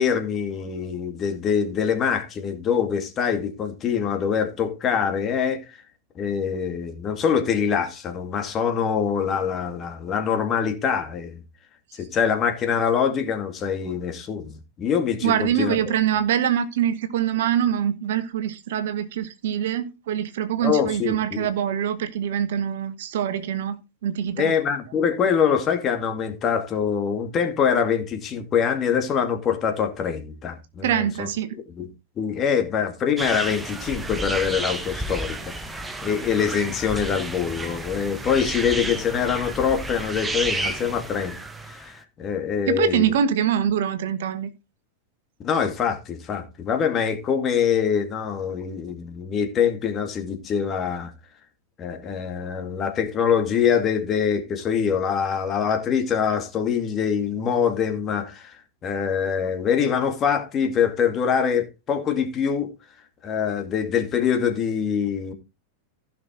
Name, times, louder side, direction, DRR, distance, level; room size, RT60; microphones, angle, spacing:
voice 1, 0.0-5.6 6.2-11.4 11.9-15.9 20.6-21.5 24.4-31.3 31.8-31.9 32.2-41.4 41.6-43.1 45.4-51.1 51.8-58.6 58.8-62.7 63.2-65.3, left 7 dB, 30° left, 2.3 m, -24 dB
voice 2, 15.2-24.5 30.8-31.6 42.7-44.5, right 9 dB, 55° right, 1.2 m, -24 dB
sound 1, 33.2-42.0, right 2 dB, 10° right, 1.3 m, -32 dB
15.5 x 6.1 x 3.8 m
figure-of-eight pair, 90°, 0 cm